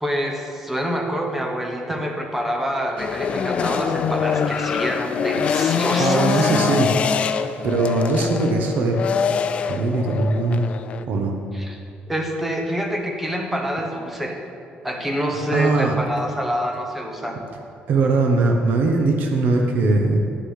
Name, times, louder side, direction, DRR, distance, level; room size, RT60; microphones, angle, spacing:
voice 1, 0.0-6.5 11.5-11.8 12.1-14.4 14.8-17.4, equal, 5° right, 2 dB, 1.0 m, -26 dB
sound 1, 3.0-11.0, left 6 dB, 35° left, 0.4 m, -24 dB
voice 2, 6.0-6.9 7.6-9.0 9.7-10.6 11.1-11.3 15.5-16.0 17.9-20.2, right 3 dB, 60° right, 2 dB, 1.0 m, -20 dB
9.8 x 6.6 x 6.4 m, 2.4 s
cardioid pair, 175°, 3 cm